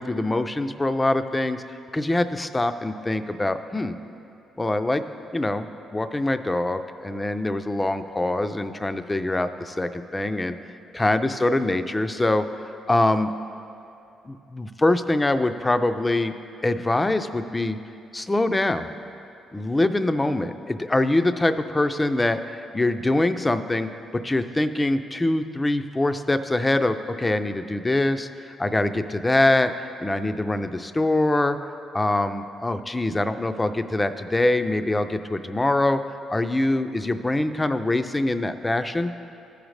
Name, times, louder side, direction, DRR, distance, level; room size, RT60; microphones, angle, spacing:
voice 1, 0.0-1.6 1.9-3.9 4.6-5.0 5.3-5.7 5.9-10.6 10.9-13.3 14.3-16.4 16.6-17.8 18.1-18.9 19.5-29.7 30.0-31.6 31.9-36.0 36.3-39.1, left 2 dB, 15° left, 9 dB, 0.4 m, -24 dB
14.5 x 5.1 x 3.2 m, 2.6 s
cardioid pair, 90°, 0 cm